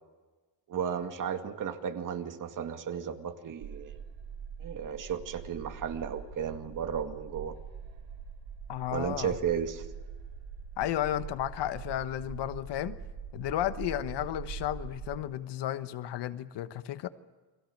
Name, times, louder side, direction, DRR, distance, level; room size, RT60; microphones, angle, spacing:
voice 1, 0.7-4.0 4.6-7.6 8.9-9.9, right 8 dB, 45° right, 6 dB, 2.2 m, -34 dB
sound 1, 3.6-15.2, right 6 dB, 85° right, 4.2 m, -43 dB
voice 2, 8.7-9.3 10.8-13.0 13.3-17.1, left 12 dB, 70° left, 12 dB, 1.3 m, -33 dB
29.5 x 23.5 x 6.7 m, 1.3 s
cardioid pair, 155°, 43 cm